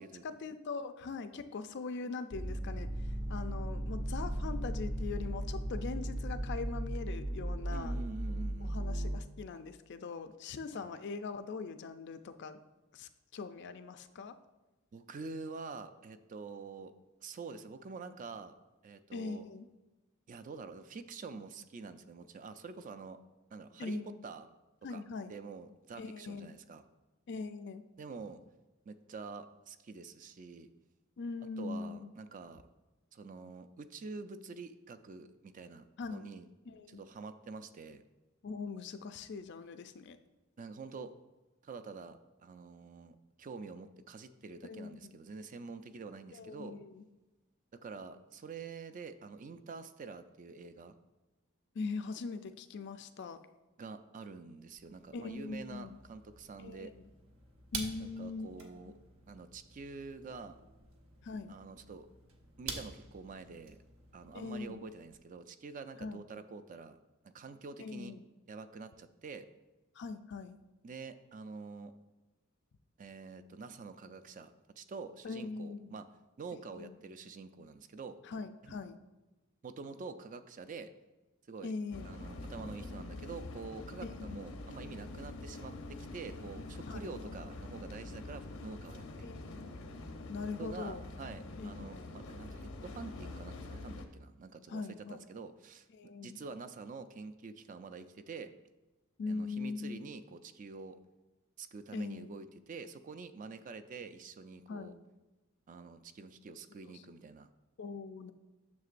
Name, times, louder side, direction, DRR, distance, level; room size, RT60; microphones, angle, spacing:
voice 1, 0.0-8.0 8.6-12.6 12.9-14.3 19.1-19.7 23.8-24.1 24.8-25.3 26.0-26.6 27.3-27.8 31.2-32.1 36.0-36.3 36.7-37.0 38.4-40.2 44.6-45.2 46.3-47.0 51.7-53.4 55.1-56.0 56.6-57.1 57.7-58.9 61.2-61.5 64.3-64.9 66.0-66.3 67.8-68.2 70.0-70.6 75.2-76.0 76.5-77.0 78.3-79.0 81.6-82.1 84.0-84.4 86.9-87.4 89.2-89.7 90.3-91.1 91.6-92.1 94.7-95.2 95.9-96.4 99.2-100.0 101.9-102.3 104.7-105.0 106.9-107.0 107.8-108.3, left 4 dB, 55° left, 10 dB, 0.4 m, -41 dB
sound 1, 2.3-9.2, right 1 dB, 60° right, 1.6 m, -36 dB
voice 2, 7.7-8.8 10.7-10.9 14.9-16.9 17.2-18.5 18.8-19.5 20.3-23.2 23.5-24.5 24.9-25.0 25.3-26.8 28.0-28.4 28.9-30.7 31.6-32.6 33.1-36.5 36.9-38.0 40.6-41.1 41.6-46.8 47.8-50.9 53.8-56.9 58.0-58.9 59.3-60.6 61.5-62.1 62.6-63.8 64.1-67.0 67.2-68.1 68.5-69.5 70.8-71.9 73.0-76.1 76.4-78.2 78.6-78.8 79.6-80.9 81.5-81.7 82.0-89.6 90.6-98.5 99.3-101.0 101.6-105.0 105.7-107.5, right 4 dB, 40° right, 10 dB, 0.3 m, -47 dB
sound 2, 54.7-65.2, right 4 dB, 85° right, 0.9 m, -49 dB
sound 3, 81.9-94.1, left 2 dB, 85° left, 0.8 m, -45 dB
9.4 x 6.7 x 2.5 m, 1.1 s
head